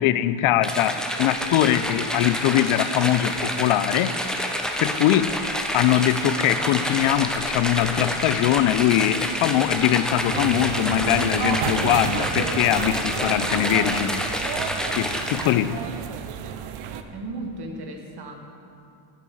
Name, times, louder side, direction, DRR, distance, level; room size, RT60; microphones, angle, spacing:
voice 1, 0.0-4.2 4.8-5.4 5.7-14.2 15.0-15.8, left 12 dB, 80° left, 14 dB, 0.5 m, -22 dB
sound 1, 0.6-15.7, equal, ahead, 0.7 m, -28 dB
sound 2, 10.3-17.0, right 8 dB, 85° right, 0.7 m, -31 dB
voice 2, 17.1-18.4, right 2 dB, 50° right, 2 dB, 1.6 m, -35 dB
9.5 x 6.9 x 6.2 m, 2.5 s
cardioid pair, 90°, 49 cm